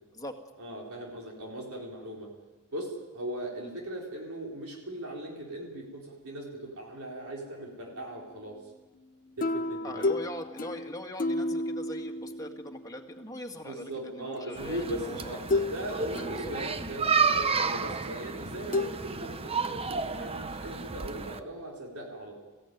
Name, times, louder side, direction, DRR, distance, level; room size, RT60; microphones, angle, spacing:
voice 1, 0.6-2.3 2.7-8.5 9.4-10.1 13.6-22.4, right 1 dB, 70° right, -1 dB, 4.4 m, -39 dB
sound 1, 9.4-13.0 14.4-14.5 15.5-15.8 16.1-17.0 18.7-18.9, left 2 dB, 40° left, 0.8 m, -31 dB
voice 2, 9.8-15.4 16.3-16.5, left 1 dB, 15° left, 2 dB, 1.9 m, -41 dB
sound 2, 14.6-21.4, right 5 dB, 25° right, 0.8 m, -31 dB
21.0 x 15.5 x 9.4 m, 1.2 s
head